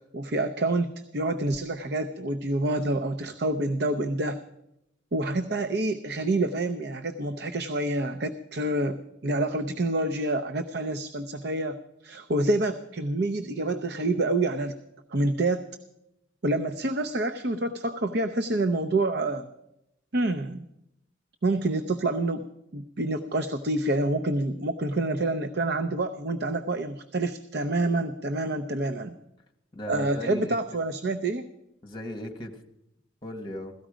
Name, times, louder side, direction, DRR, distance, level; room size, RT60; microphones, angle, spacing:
voice 1, 0.1-4.4 5.1-11.8 12.0-14.8 15.1-15.7 16.4-19.5 20.1-20.6 21.4-22.5 22.7-29.2 29.9-31.4, right 2 dB, 55° right, 8 dB, 0.6 m, -27 dB
voice 2, 29.7-30.8 31.8-32.5 33.2-33.7, left 1 dB, 25° left, 5 dB, 1.4 m, -37 dB
17.0 x 13.5 x 5.0 m, 0.85 s
head